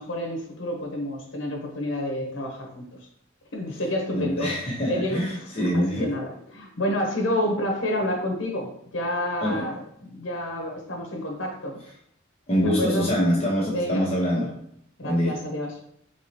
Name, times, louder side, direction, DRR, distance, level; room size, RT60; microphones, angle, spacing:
voice 1, 0.0-2.8 3.5-9.7 10.0-11.8 12.6-13.1 13.6-14.0 15.0-15.7, left 1 dB, 70° left, 1 dB, 1.0 m, -29 dB
voice 2, 4.1-6.1 9.4-9.7 12.5-14.6 15.0-15.4, equal, 30° left, -5 dB, 1.2 m, -24 dB
4.8 x 3.0 x 2.9 m, 0.71 s
head